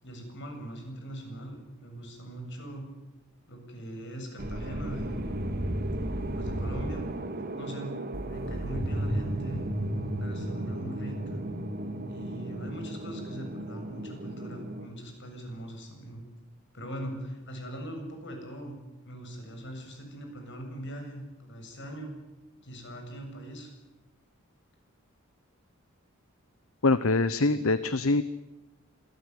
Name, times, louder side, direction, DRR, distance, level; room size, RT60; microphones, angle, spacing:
voice 1, 0.0-2.8 3.5-5.3 6.3-7.1 7.5-9.7 10.2-11.4 12.1-16.2 16.7-18.8 19.0-22.1 22.6-23.7, right 1 dB, 60° left, 4 dB, 7.6 m, -41 dB
sound 1, 4.4-14.9, right 1 dB, 45° right, 2.9 m, -34 dB
voice 2, 26.8-28.2, left 3 dB, 75° left, 14 dB, 1.0 m, -24 dB
27.0 x 18.5 x 9.7 m, 1.1 s
head